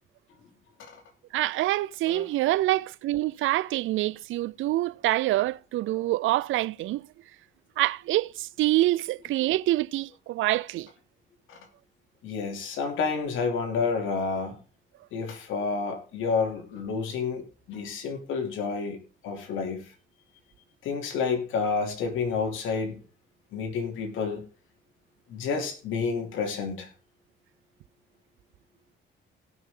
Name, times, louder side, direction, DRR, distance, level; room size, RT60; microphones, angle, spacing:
voice 1, 1.3-7.1 7.8-10.9, right 16 dB, 80° right, 0.5 m, -26 dB
voice 2, 12.2-14.6 15.1-19.0 19.2-19.9 20.8-23.0 23.5-24.4 25.3-26.9, left 5 dB, 85° left, 2.9 m, -30 dB
18.0 x 6.3 x 3.8 m
cardioid pair, 90°, 20 cm